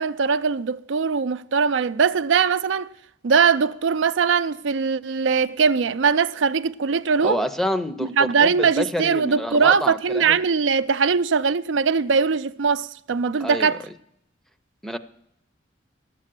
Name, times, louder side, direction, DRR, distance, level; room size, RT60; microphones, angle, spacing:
voice 1, 0.0-2.9 3.2-7.4 8.0-13.8, right 5 dB, 90° right, 0.5 m, -21 dB
voice 2, 7.2-10.4 13.4-13.7 14.8-15.0, equal, ahead, 0.6 m, -28 dB
12.0 x 7.5 x 7.5 m
head